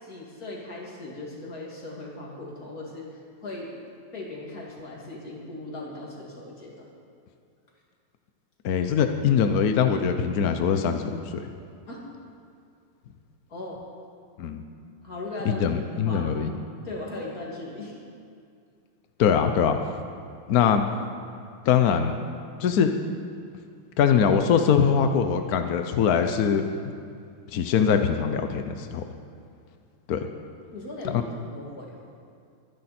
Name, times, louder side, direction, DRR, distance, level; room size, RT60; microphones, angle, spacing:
voice 1, 0.0-3.7 4.1-6.8 11.9-12.0 13.5-13.8 15.0-16.3 16.8-18.0 30.7-32.0, left 2 dB, 40° left, -3 dB, 2.9 m, -38 dB
voice 2, 8.6-11.5 14.4-14.6 15.5-16.5 19.2-19.8 20.5-20.8 21.6-22.2 22.6-22.9 24.0-26.6 27.5-29.0 30.1-30.3 31.0-31.2, left 7 dB, 70° left, 7 dB, 0.9 m, -22 dB
23.5 x 10.5 x 4.3 m, 2.3 s
omnidirectional pair, 2.4 m